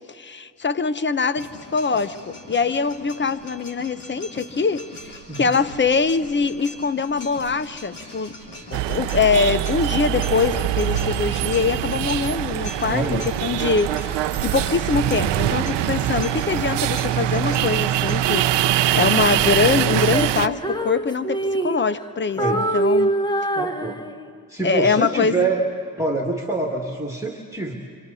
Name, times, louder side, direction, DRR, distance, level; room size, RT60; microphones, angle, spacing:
voice 1, 0.1-8.3 8.7-23.1 24.6-25.5, left 5 dB, 25° left, 12 dB, 0.9 m, -23 dB
sound 1, 1.3-18.3, equal, 85° left, 2.8 m, -40 dB
sound 2, 8.7-20.5, right 12 dB, 75° right, 0.8 m, -23 dB
voice 2, 12.9-13.3 22.4-22.7 23.6-24.0 24.5-25.6 26.0-27.7, right 3 dB, 5° right, 1 dB, 2.2 m, -25 dB
Female singing, 19.8-22.1 22.4-24.4, right 1 dB, 10° left, 1.4 m, -24 dB
29.5 x 26.0 x 4.2 m, 2.3 s
hypercardioid pair, 50°, 43 cm